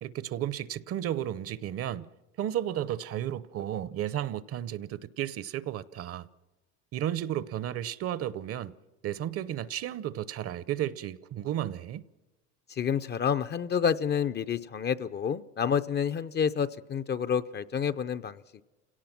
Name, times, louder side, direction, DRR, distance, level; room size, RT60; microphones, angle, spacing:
voice 1, 0.0-2.1 2.4-6.3 6.9-8.7 9.0-12.0, right 11 dB, 45° right, 0.7 m, -33 dB
voice 2, 12.7-18.6, left 7 dB, 30° left, 0.6 m, -29 dB
29.0 x 17.5 x 6.0 m
supercardioid pair, 105°, 34 cm